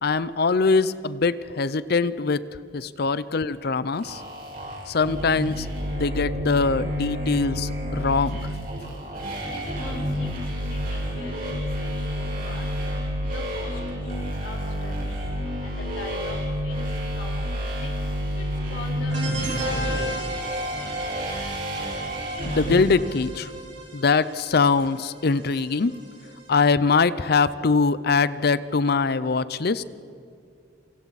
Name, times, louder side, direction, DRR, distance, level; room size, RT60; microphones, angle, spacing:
voice 1, 0.0-2.4 2.7-4.2 4.9-5.7 5.9-8.5 22.4-23.5 23.9-25.9 26.5-29.8, left 4 dB, 55° left, 16 dB, 0.6 m, -22 dB
sound 1, 3.9-22.8, equal, 50° right, 5.7 m, -30 dB
voice 2, 9.5-10.4 10.7-11.9 12.2-12.7 13.3-15.3 15.6-17.9 18.4-18.5 18.7-20.4, left 2 dB, 75° left, -1 dB, 4.0 m, -42 dB
sound 2, 19.1-26.4, right 1 dB, 70° right, 4.1 m, -35 dB
27.5 x 24.5 x 4.1 m, 2.4 s
head